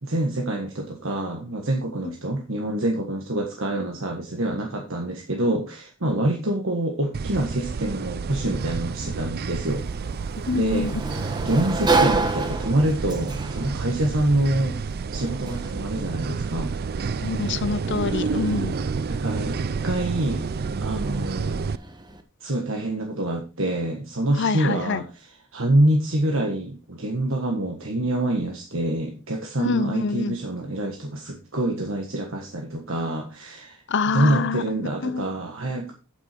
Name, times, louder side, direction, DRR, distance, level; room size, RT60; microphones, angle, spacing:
voice 1, 0.0-9.9 10.5-10.9 11.4-14.8 15.1-16.7 19.1-20.5 20.8-21.7 22.4-33.8 34.1-35.9, right 1 dB, 65° right, 2 dB, 1.5 m, -26 dB
sound 1, 7.1-21.8, right 5 dB, 45° right, 0.4 m, -29 dB
Sliding door, 9.6-22.2, right 3 dB, 20° right, 1.2 m, -31 dB
voice 2, 10.5-11.0 17.2-18.8 24.4-25.0 29.6-30.4 33.9-34.6 35.0-35.3, left 4 dB, 55° left, 14 dB, 0.6 m, -25 dB
9.0 x 8.3 x 4.5 m, 0.31 s
head